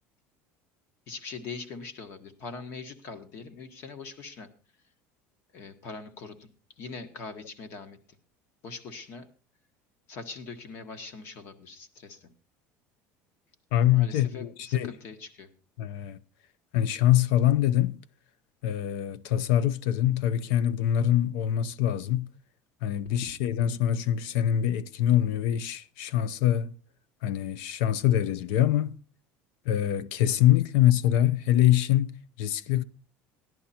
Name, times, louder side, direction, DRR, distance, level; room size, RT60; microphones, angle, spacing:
voice 1, 1.1-4.5 5.5-6.5 6.8-8.2 8.6-9.3 10.1-12.3 13.8-15.5 23.1-23.3, left 4 dB, 45° left, 1.5 m, -42 dB
voice 2, 13.7-14.9 15.8-16.2 16.7-18.0 18.6-22.3 22.8-26.7 27.2-28.9 29.7-32.8, left 12 dB, 80° left, 0.7 m, -24 dB
15.0 x 11.0 x 4.3 m
cardioid pair, 170°, 6 cm